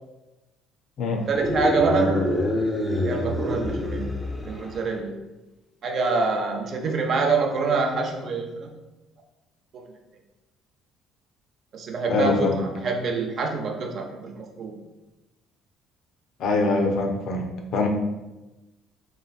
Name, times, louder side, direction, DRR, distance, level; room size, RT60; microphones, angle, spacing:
sound 1, 1.3-4.9, left 1 dB, 10° left, 0.4 m, -26 dB
voice 1, 1.3-2.2 3.0-4.1 4.4-5.2 5.8-8.8 9.7-9.8 11.7-14.8, right 4 dB, 55° right, 3 dB, 0.4 m, -26 dB
voice 2, 12.1-12.6 16.4-17.5 17.7-17.9, left 3 dB, 65° left, 2 dB, 0.5 m, -23 dB
2.9 x 2.5 x 2.3 m, 1.0 s
supercardioid pair, 90°, 0 cm